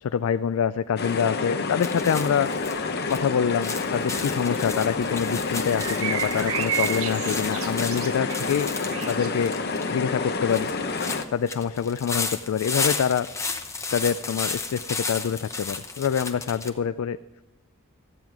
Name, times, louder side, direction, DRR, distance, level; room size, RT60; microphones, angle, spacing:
voice 1, 0.0-2.5 3.1-8.7 9.1-9.5 9.9-10.7 11.3-13.3 13.9-17.2, left 7 dB, 70° left, 13 dB, 0.3 m, -26 dB
sound 1, 1.0-11.2, left 4 dB, 45° left, 0.8 m, -29 dB
sound 2, 1.8-16.7, left 4 dB, 15° left, 0.7 m, -34 dB
sound 3, 5.7-9.4, right 10 dB, 65° right, 0.5 m, -32 dB
14.0 x 8.9 x 4.7 m, 1.1 s
head